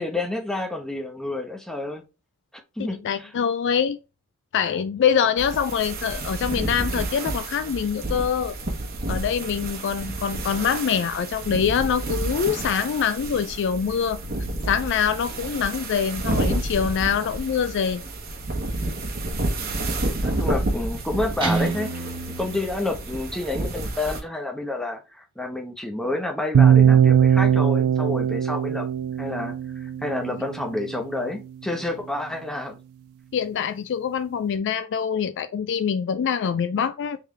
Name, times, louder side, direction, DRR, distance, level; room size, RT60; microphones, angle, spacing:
voice 1, 0.0-2.0 2.8-3.3 19.9-22.1 22.4-28.9 29.2-32.8, left 2 dB, 5° left, 0.8 m, -29 dB
voice 2, 2.8-4.0 4.5-8.5 9.1-14.2 14.7-18.0 33.3-37.2, left 7 dB, 55° left, 0.3 m, -24 dB
sound 1, 5.4-24.2, right 2 dB, 45° right, 1.1 m, -30 dB
Guitar, 21.4-23.5, right 3 dB, 25° right, 0.9 m, -29 dB
sound 2, 26.5-30.6, right 8 dB, 65° right, 0.3 m, -19 dB
3.6 x 3.2 x 3.3 m
head